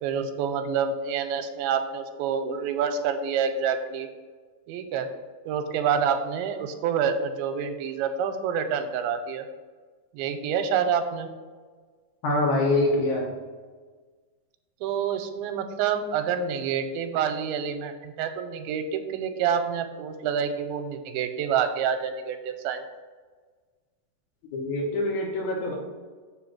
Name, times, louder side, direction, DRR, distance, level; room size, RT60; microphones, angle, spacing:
voice 1, 0.0-4.1 4.7-5.1 5.5-9.4 10.1-11.3 14.8-22.8, right 7 dB, 90° right, 8 dB, 2.5 m, -27 dB
voice 2, 12.2-13.3 24.5-25.7, left 2 dB, 65° left, -2 dB, 2.3 m, -25 dB
7.0 x 3.7 x 6.0 m, 1.4 s
omnidirectional pair, 4.3 m